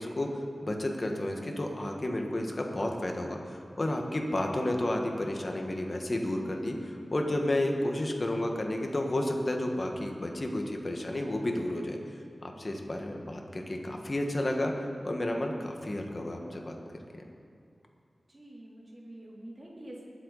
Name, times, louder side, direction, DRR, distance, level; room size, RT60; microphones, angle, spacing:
voice 1, 0.0-12.0 12.4-14.7 15.0-16.8, left 1 dB, 40° left, 2 dB, 1.5 m, -31 dB
voice 2, 18.3-20.0, right 1 dB, 40° right, -5 dB, 3.3 m, -46 dB
20.5 x 7.8 x 4.1 m, 2.5 s
wide cardioid pair, 80°, 0 cm